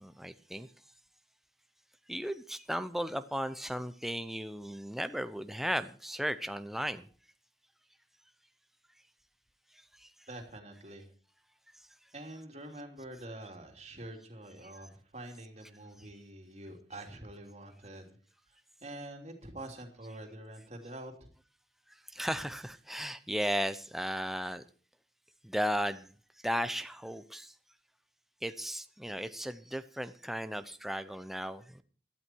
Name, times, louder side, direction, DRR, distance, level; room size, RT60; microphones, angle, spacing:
voice 1, 0.0-0.7 2.1-7.1 10.0-10.1 22.1-24.6 25.4-26.1 26.4-27.5 28.4-31.8, equal, ahead, 0.7 m, -35 dB
voice 2, 10.3-11.1 12.1-18.1 18.8-21.1, right 1 dB, 40° right, 3.2 m, -46 dB
17.0 x 12.5 x 4.6 m
head